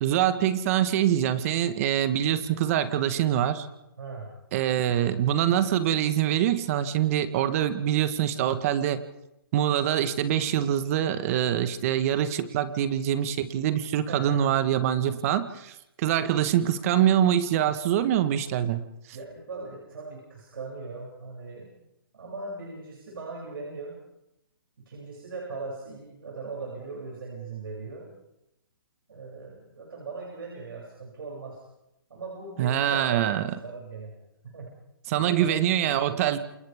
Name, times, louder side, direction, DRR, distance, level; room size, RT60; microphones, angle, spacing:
voice 1, 0.0-3.7 4.5-9.0 9.5-18.8 32.6-33.5 35.1-36.4, right 10 dB, 40° right, 11 dB, 1.5 m, -24 dB
voice 2, 4.0-4.3 14.1-14.4 19.1-21.7 22.1-24.0 24.9-28.1 29.1-31.6 32.1-34.1 34.4-34.7 35.2-35.6, right 3 dB, 75° right, -3 dB, 7.4 m, -39 dB
28.0 x 28.0 x 3.6 m, 0.85 s
hypercardioid pair, 140°, 12 cm